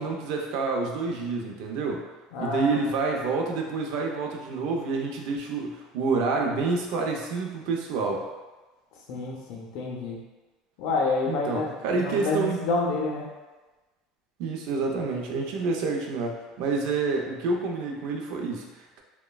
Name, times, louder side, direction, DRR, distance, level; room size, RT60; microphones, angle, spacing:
voice 1, 0.0-2.1 2.4-8.3 11.3-12.7 14.4-19.0, right 4 dB, 65° right, 1 dB, 0.4 m, -28 dB
voice 2, 2.3-2.9 9.1-10.2 10.8-13.3, left 3 dB, 65° left, -2 dB, 0.5 m, -28 dB
3.0 x 2.1 x 2.2 m, 1.2 s
cardioid pair, 150°, 0 cm